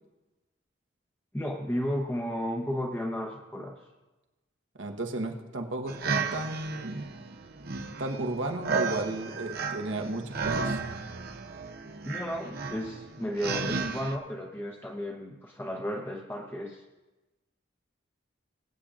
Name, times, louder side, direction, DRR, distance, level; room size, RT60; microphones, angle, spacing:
voice 1, 1.3-3.8 12.1-16.8, equal, 10° left, 0 dB, 0.8 m, -33 dB
voice 2, 4.8-7.1 8.0-10.8, right 2 dB, 85° right, 3 dB, 1.2 m, -33 dB
sound 1, 5.9-14.2, right 4 dB, 55° right, 0.7 m, -34 dB
22.5 x 8.6 x 2.5 m, 1.1 s
head